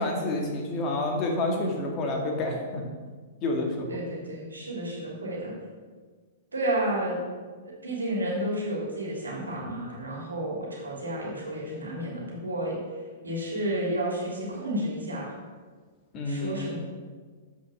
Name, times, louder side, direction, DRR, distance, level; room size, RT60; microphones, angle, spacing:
voice 1, 0.0-2.9 3.4-3.9 16.1-16.8, left 2 dB, 35° left, 1 dB, 2.2 m, -29 dB
voice 2, 3.9-5.5 6.5-7.2 7.6-12.8 13.2-15.3 16.2-16.8, right 1 dB, 90° right, -3 dB, 3.2 m, -31 dB
8.0 x 6.2 x 6.3 m, 1.5 s
hypercardioid pair, 115°, 0 cm